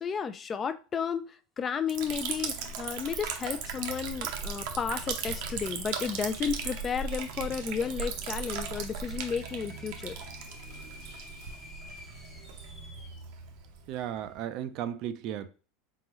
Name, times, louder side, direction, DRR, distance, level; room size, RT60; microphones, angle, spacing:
voice 1, 0.0-1.3 1.6-10.2, left 7 dB, 25° left, 0.4 m, -33 dB
Liquid, 1.9-14.3, right 6 dB, 70° right, 0.8 m, -37 dB
sound 1, 4.7-13.3, left 2 dB, 10° left, 0.9 m, -53 dB
voice 2, 13.9-15.5, right 10 dB, 55° right, 0.5 m, -35 dB
3.8 x 3.8 x 3.0 m
supercardioid pair, 115°, 0 cm